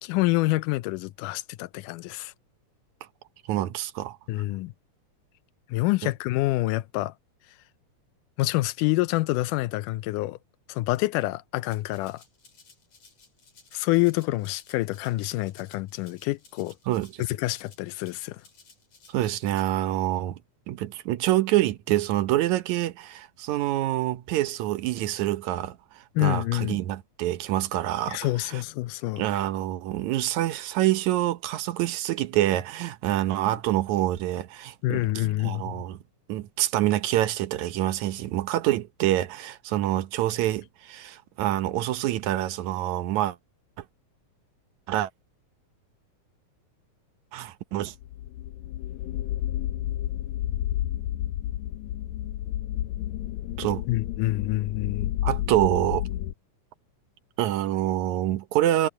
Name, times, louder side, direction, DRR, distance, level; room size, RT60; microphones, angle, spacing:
voice 1, 0.0-2.3 4.3-4.7 5.7-7.1 8.4-10.4 10.7-12.2 13.7-16.7 17.2-18.4 26.2-26.8 28.1-29.2 34.8-35.8 53.9-55.2, left 18 dB, 90° left, 2.2 m, -27 dB
voice 2, 3.5-4.2 6.0-6.1 16.9-17.2 19.1-20.4 20.7-28.2 28.5-28.6 29.2-36.0 36.3-43.4 44.9-45.1 47.3-47.9 53.6-53.8 55.2-56.1 57.4-58.9, right 14 dB, 75° right, 2.1 m, -26 dB
Rattle (instrument), 11.7-19.7, left 4 dB, 60° left, 6.6 m, -57 dB
sound 1, 48.0-56.3, left 13 dB, 75° left, 1.8 m, -31 dB
omnidirectional pair, 3.6 m